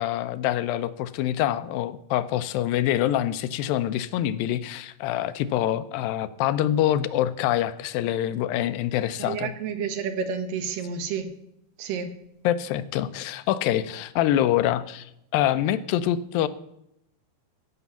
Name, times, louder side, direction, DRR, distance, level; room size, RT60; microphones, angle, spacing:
voice 1, 0.0-9.5 12.4-16.5, left 12 dB, 85° left, 14 dB, 2.4 m, -25 dB
voice 2, 9.2-11.3 11.8-12.1, right 6 dB, 75° right, 8 dB, 2.8 m, -30 dB
15.5 x 6.6 x 7.0 m, 0.80 s
omnidirectional pair, 4.1 m